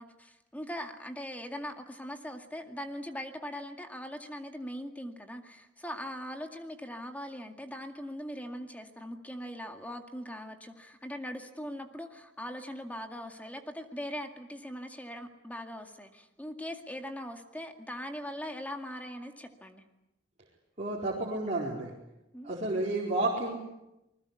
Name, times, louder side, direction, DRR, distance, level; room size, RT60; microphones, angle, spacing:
voice 1, 0.0-19.8 22.3-22.5, equal, 10° left, 5 dB, 2.1 m, -41 dB
voice 2, 20.8-21.9 22.4-23.5, right 2 dB, 40° right, -4 dB, 4.5 m, -31 dB
28.0 x 20.5 x 8.4 m, 0.92 s
head